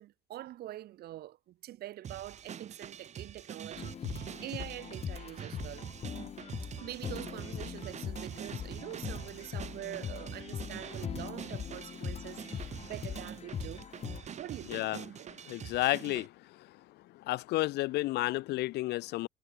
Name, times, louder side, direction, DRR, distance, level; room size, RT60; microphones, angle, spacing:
voice 1, 0.0-5.8 6.8-13.9 14.4-15.3, right 14 dB, 70° right, 1.5 m, -45 dB
sound 1, 2.0-16.3, right 8 dB, 40° right, 1.3 m, -45 dB
sound 2, 3.8-14.2, left 8 dB, 40° left, 0.8 m, -41 dB
voice 2, 15.5-16.3 17.3-19.3, left 18 dB, 80° left, 0.8 m, -31 dB
cardioid pair, 110°, 17 cm